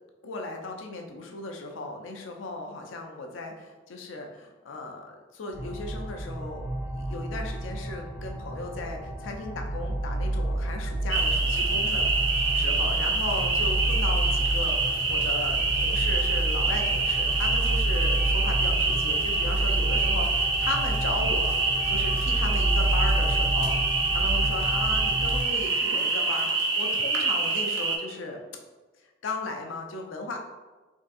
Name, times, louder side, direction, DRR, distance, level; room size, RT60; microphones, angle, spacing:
voice 1, 0.2-23.7 24.1-28.4 29.2-30.4, left 2 dB, 85° left, 3 dB, 0.5 m, -36 dB
sound 1, 5.5-25.4, right 1 dB, 35° left, 0.7 m, -29 dB
sound 2, 11.1-28.0, right 3 dB, 75° right, 0.6 m, -26 dB
3.6 x 2.3 x 2.6 m, 1.2 s
head